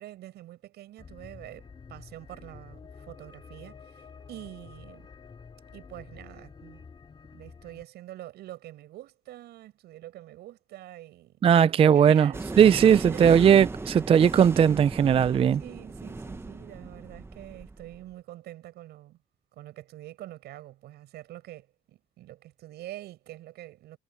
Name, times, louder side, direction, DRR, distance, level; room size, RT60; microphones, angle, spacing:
voice 1, 0.0-5.1 5.7-6.8 7.3-13.4 13.8-14.0 15.6-19.2 19.5-24.0, right 14 dB, 75° right, 7.8 m, -46 dB
sound 1, 1.0-7.8, left 5 dB, 30° left, 2.4 m, -49 dB
voice 2, 11.4-12.3 12.6-15.6, right 8 dB, 35° right, 0.4 m, -18 dB
sound 2, 12.3-18.0, right 3 dB, 15° right, 1.1 m, -37 dB
cardioid pair, 110°, 17 cm